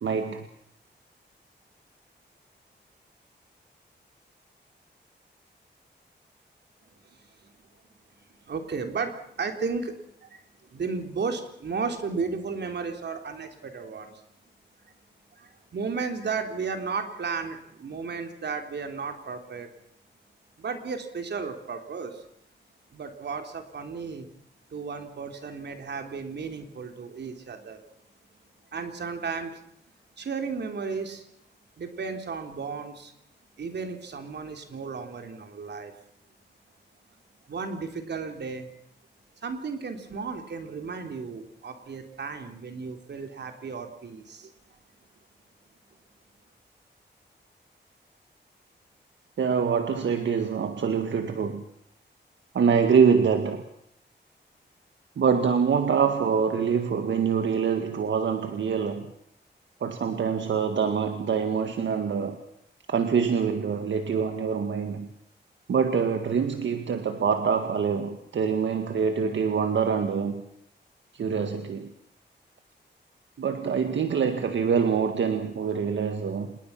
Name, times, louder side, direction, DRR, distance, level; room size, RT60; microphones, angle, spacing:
voice 1, 0.0-0.5 49.4-51.6 52.5-53.6 55.2-59.1 59.8-62.4 62.9-65.1 65.7-70.4 71.1-71.9 73.4-76.6, right 6 dB, 85° right, 7 dB, 1.8 m, -25 dB
voice 2, 7.1-7.5 8.5-10.4 10.7-14.2 15.4-19.7 20.6-22.2 22.9-24.3 24.7-27.8 28.7-29.6 30.2-31.3 31.8-33.1 33.6-35.9 37.5-38.7 39.4-44.5, right 5 dB, 65° right, 5 dB, 3.7 m, -34 dB
27.0 x 21.0 x 6.0 m, 0.73 s
wide cardioid pair, 150°, 19 cm